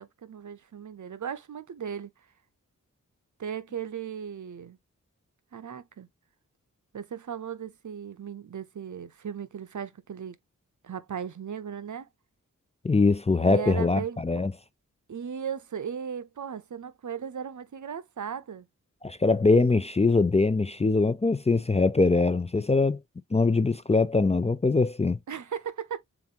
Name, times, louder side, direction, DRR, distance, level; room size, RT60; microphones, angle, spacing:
voice 1, 0.0-2.1 3.4-4.8 5.5-6.1 6.9-10.4 10.8-12.1 13.4-14.4 15.1-18.7 25.3-26.0, right 7 dB, 65° right, 0.7 m, -37 dB
voice 2, 12.8-14.5 19.0-23.0 23.3-25.2, left 3 dB, 20° left, 0.4 m, -22 dB
7.1 x 2.5 x 2.8 m
wide cardioid pair, 70°, 32 cm